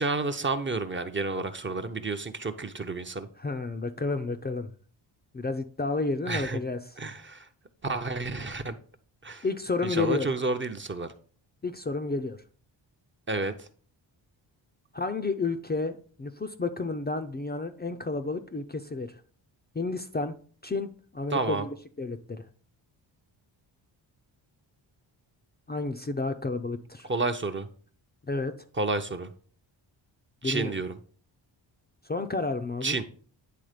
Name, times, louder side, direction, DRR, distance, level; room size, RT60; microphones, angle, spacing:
voice 1, 0.0-3.3 6.3-6.6 7.0-7.4 7.8-8.8 9.2-9.4 9.8-11.1 13.3-13.7 21.3-21.6 27.1-27.7 28.8-29.3 30.4-31.0 32.8-33.0, right 3 dB, 25° right, 7 dB, 0.7 m, -30 dB
voice 2, 3.4-4.7 5.3-6.9 9.4-10.3 11.6-12.4 14.9-19.2 19.7-20.3 20.6-22.4 25.7-27.1 28.3-28.5 30.4-30.7 32.1-33.0, left 3 dB, 20° left, 6 dB, 0.5 m, -31 dB
9.4 x 3.6 x 5.0 m, 0.44 s
cardioid pair, 95°, 47 cm